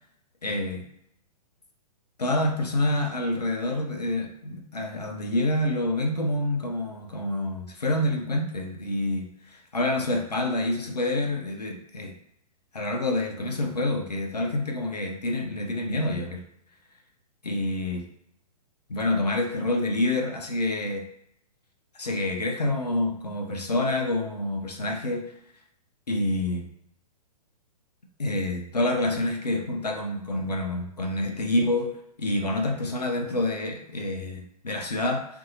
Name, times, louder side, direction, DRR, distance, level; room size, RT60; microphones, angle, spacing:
voice 1, 0.4-0.9 2.2-12.2 12.7-16.4 17.4-18.1 18.9-21.1 21.9-25.3 26.1-26.7 28.2-31.9 32.2-35.3, left 1 dB, 80° left, 2 dB, 0.5 m, -27 dB
2.6 x 2.5 x 2.7 m, 0.73 s
figure-of-eight pair, 115°, 20 cm